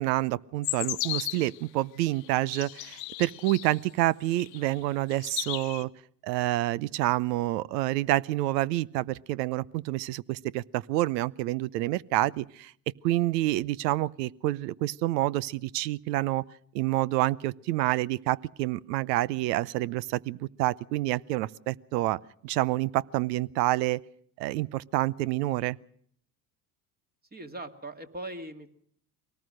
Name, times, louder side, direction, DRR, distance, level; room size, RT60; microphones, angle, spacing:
voice 1, 0.0-5.9 6.2-12.7 13.0-16.4 16.7-24.0 24.4-25.8, right 16 dB, 75° right, 23 dB, 0.8 m, -28 dB
sound 1, 0.6-1.6 2.2-3.8 4.4-4.8 5.1-5.8, left 18 dB, 80° left, 1.1 m, -35 dB
voice 2, 27.3-28.7, right 2 dB, 20° right, 7 dB, 2.1 m, -40 dB
23.0 x 18.5 x 6.4 m, 0.63 s
hypercardioid pair, 85°, 50 cm